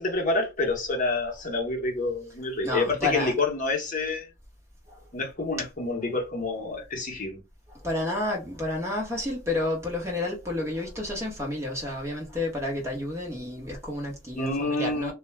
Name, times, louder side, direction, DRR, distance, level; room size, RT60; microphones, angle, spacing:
voice 1, 0.0-4.3 5.1-7.4 14.4-15.1, left 3 dB, 35° left, 0.9 m, -28 dB
voice 2, 2.6-3.3 4.9-5.1 7.7-15.1, left 2 dB, 15° right, 0.9 m, -30 dB
2.2 x 2.2 x 3.0 m
head